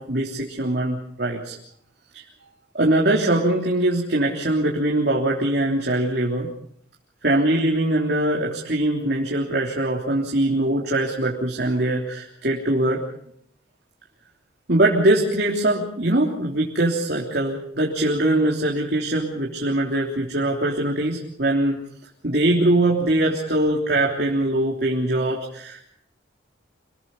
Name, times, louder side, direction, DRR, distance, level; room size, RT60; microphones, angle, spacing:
voice 1, 0.0-1.6 2.1-2.2 2.7-6.5 7.2-13.0 14.7-21.8 22.2-25.9, right 1 dB, 55° right, -2 dB, 3.3 m, -22 dB
27.5 x 21.5 x 5.5 m, 0.67 s
head